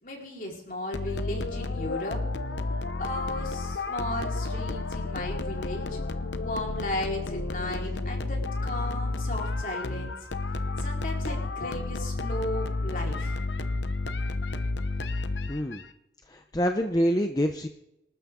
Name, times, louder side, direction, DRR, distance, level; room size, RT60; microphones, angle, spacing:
voice 1, 0.0-2.2 3.0-6.0 6.4-10.1 10.8-13.4, left 1 dB, 50° left, -1 dB, 4.4 m, -35 dB
sound 1, 0.9-15.9, left 2 dB, 90° left, 0.9 m, -31 dB
voice 2, 15.5-15.8 16.3-17.7, equal, 20° left, 5 dB, 0.8 m, -26 dB
25.5 x 13.0 x 3.8 m, 0.87 s
head